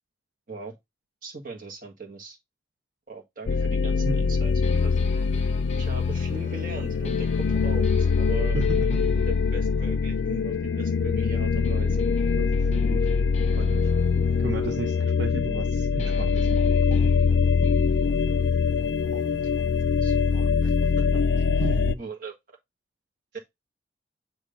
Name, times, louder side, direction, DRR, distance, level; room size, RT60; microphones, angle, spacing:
voice 1, 1.2-2.4 3.1-5.0 5.8-12.0 19.1-19.7 20.0-22.3 23.3-23.4, right 3 dB, 50° right, 1.7 m, -40 dB
sound 1, 3.5-21.9, left 5 dB, 75° left, 0.4 m, -23 dB
sound 2, 4.6-11.2 11.6-15.7 16.0-21.7, left 2 dB, 40° left, 0.8 m, -46 dB
voice 2, 8.5-9.0 12.4-13.1 13.6-13.9 14.4-17.2 21.6-22.0, right 3 dB, 80° right, 0.8 m, -34 dB
7.5 x 3.0 x 5.1 m
head